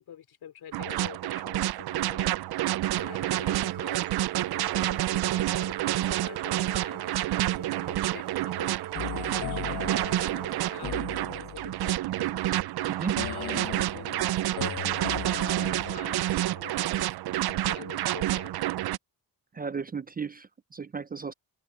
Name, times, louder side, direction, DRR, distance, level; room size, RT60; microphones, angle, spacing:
voice 1, 0.0-2.4 2.9-4.0 4.5-8.7 9.2-11.1 11.4-12.4 13.2-17.1 17.5-18.6, left 9 dB, 80° left, 4.7 m, -46 dB
sound 1, 0.7-19.0, right 14 dB, 80° right, 0.6 m, -29 dB
sound 2, 3.0-10.9, right 10 dB, 60° right, 1.3 m, -43 dB
sound 3, 9.0-11.9 13.2-16.5, left 12 dB, 55° left, 0.5 m, -38 dB
voice 2, 12.9-13.2 19.5-21.3, right 5 dB, 25° right, 0.5 m, -35 dB
cardioid pair, 110°, 38 cm